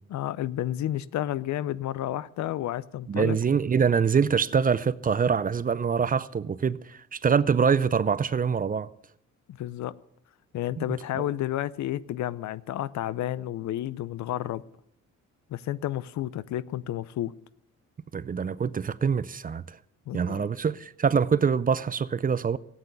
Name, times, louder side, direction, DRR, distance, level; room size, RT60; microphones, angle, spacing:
voice 1, 0.1-3.4 9.5-9.9 10.5-14.6 15.5-17.3 20.1-20.5, left 13 dB, 70° left, 0.6 m, -31 dB
voice 2, 3.1-8.9 10.8-10.9 11.1-11.2 18.1-19.8 20.1-22.6, right 6 dB, 30° right, 0.5 m, -25 dB
14.0 x 9.0 x 8.3 m
cardioid pair, 90°, 30 cm